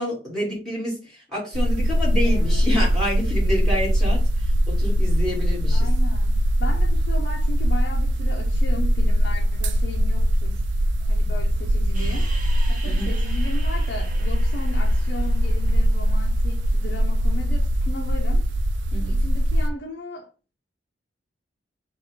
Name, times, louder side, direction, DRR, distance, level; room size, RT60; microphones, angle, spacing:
voice 1, 0.0-5.9 12.8-13.1 18.9-19.2, equal, 5° left, 2.1 m, -28 dB
sound 1, 1.5-19.7, equal, 75° right, 0.4 m, -21 dB
voice 2, 2.2-2.7 5.7-10.6 11.1-12.3 12.7-18.5 19.0-20.3, left 2 dB, 65° left, 0.6 m, -36 dB
sound 2, 11.9-17.3, right 4 dB, 45° right, 0.9 m, -43 dB
4.2 x 2.4 x 4.3 m
head